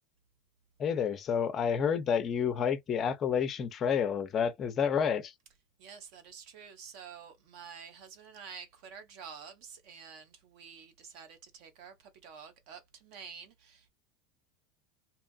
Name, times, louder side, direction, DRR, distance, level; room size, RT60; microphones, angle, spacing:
voice 1, 0.8-5.3, left 7 dB, 25° left, 0.5 m, -29 dB
voice 2, 5.8-13.9, right 6 dB, 45° right, 0.8 m, -49 dB
2.7 x 2.4 x 2.3 m
supercardioid pair, 170°, 0 cm